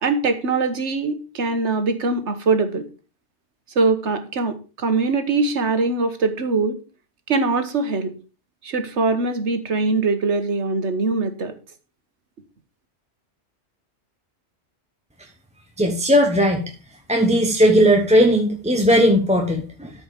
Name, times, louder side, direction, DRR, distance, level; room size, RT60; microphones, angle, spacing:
voice 1, 0.0-2.8 3.7-6.8 7.3-8.1 8.6-11.5, right 3 dB, 75° right, 9 dB, 1.6 m, -22 dB
voice 2, 15.8-16.6 17.1-19.9, equal, 5° right, 2 dB, 1.1 m, -17 dB
13.0 x 5.2 x 5.0 m, 0.34 s
omnidirectional pair, 1.2 m